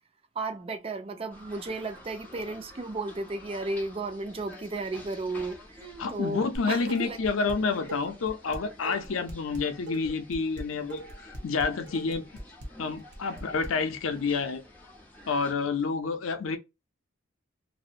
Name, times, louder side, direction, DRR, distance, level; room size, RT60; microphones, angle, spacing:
voice 1, 0.4-7.2, right 2 dB, 30° right, 0.4 m, -34 dB
sound 1, 1.3-15.5, left 1 dB, 10° left, 0.7 m, -50 dB
voice 2, 6.0-12.2 12.8-14.6 15.3-16.6, left 4 dB, 80° left, 0.5 m, -29 dB
Dishes pots and pans, 6.5-7.6 7.9-13.7, right 1 dB, 55° right, 0.7 m, -40 dB
2.7 x 2.1 x 2.4 m
head